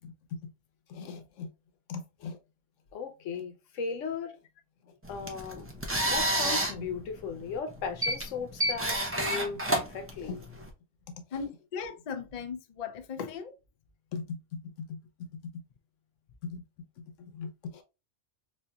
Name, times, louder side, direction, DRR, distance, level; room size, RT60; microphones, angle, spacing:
voice 1, 0.0-0.5 0.9-1.5 1.9-2.4 2.9-4.3 5.1-5.7 6.1-10.5 11.1-11.2 14.1-15.0 15.4-15.5 16.4-16.6 17.0-17.8, left 5 dB, 90° left, 1.1 m, -38 dB
sound 1, 5.0-10.7, right 1 dB, 20° right, 0.3 m, -30 dB
voice 2, 11.3-13.6, left 6 dB, 55° left, 0.5 m, -37 dB
4.2 x 2.5 x 2.3 m
omnidirectional pair, 1.3 m